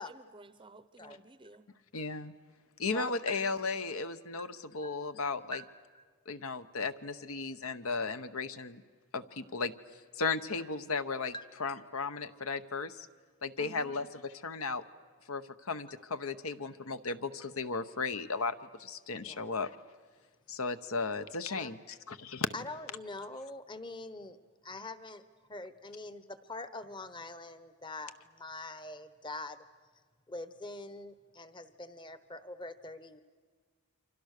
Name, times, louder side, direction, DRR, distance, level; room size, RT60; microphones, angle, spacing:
voice 1, 0.0-1.7 13.6-14.1, right 3 dB, 20° right, 13 dB, 0.7 m, -53 dB
voice 2, 1.9-2.3 2.8-5.6 6.3-8.8 9.1-9.7 10.1-11.3 11.6-13.0 13.4-14.8 15.3-19.7 20.5-22.5, left 4 dB, 70° left, 11 dB, 1.0 m, -35 dB
voice 3, 2.9-3.5 4.8-5.0 5.5-5.6 5.9-6.0 11.3-11.5 19.2-19.6 21.5-21.7 22.5-24.4 24.6-25.2 25.5-29.6 30.3-33.2, left 2 dB, 20° left, 12 dB, 1.0 m, -44 dB
29.0 x 25.5 x 6.6 m, 1.5 s
head